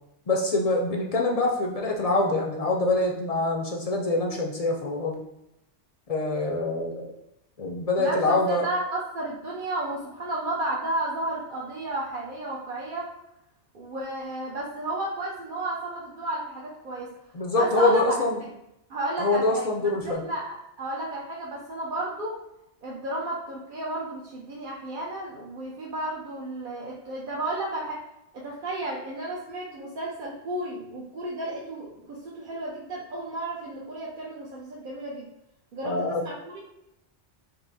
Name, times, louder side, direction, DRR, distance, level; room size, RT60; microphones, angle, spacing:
voice 1, 0.3-5.2 6.1-7.0 7.6-8.7 17.3-18.4 19.2-20.2 35.8-36.2, left 2 dB, 45° left, 0 dB, 0.5 m, -25 dB
voice 2, 8.0-13.1 13.7-17.1 17.6-18.0 18.9-19.7 20.0-22.4 22.8-28.0 28.3-35.3 35.7-36.6, right 1 dB, 55° right, -4 dB, 0.8 m, -32 dB
5.4 x 2.1 x 4.0 m, 0.86 s
omnidirectional pair, 1.2 m